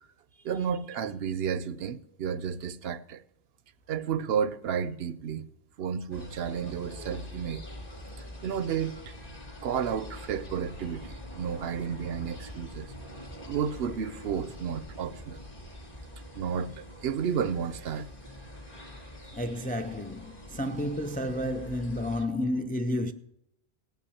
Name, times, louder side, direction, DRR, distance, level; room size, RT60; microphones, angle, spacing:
voice 1, 0.4-3.2 3.9-5.5 5.8-7.6 8.4-9.1 9.6-12.9 13.5-15.4 16.3-18.1, right 7 dB, 75° right, 0.9 m, -32 dB
sound 1, 6.1-22.2, equal, 40° left, 2.3 m, -44 dB
voice 2, 19.3-23.1, left 1 dB, 15° left, 0.3 m, -31 dB
17.0 x 5.8 x 8.4 m
omnidirectional pair, 1.0 m